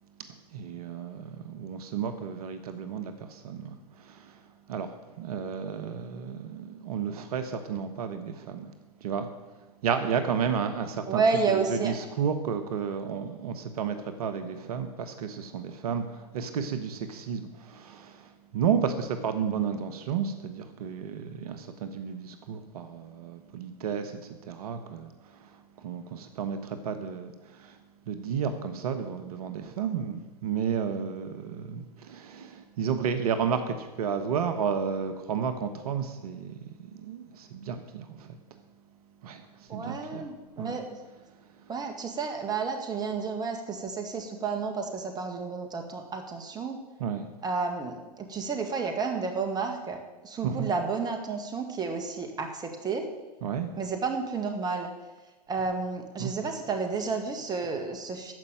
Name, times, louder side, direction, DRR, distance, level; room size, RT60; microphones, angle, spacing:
voice 1, 0.5-4.4 4.7-8.7 9.0-9.3 9.8-27.8 28.1-38.4 39.2-40.8 47.0-47.3 50.4-50.7 53.4-53.7 56.2-56.3, right 7 dB, 65° right, 8 dB, 1.3 m, -32 dB
voice 2, 11.1-12.0 39.7-40.8 41.7-46.8 47.4-53.1 53.8-54.9 55.5-58.3, right 4 dB, 20° right, 5 dB, 1.9 m, -31 dB
14.0 x 5.5 x 9.2 m, 1.2 s
hypercardioid pair, 110°, 20 cm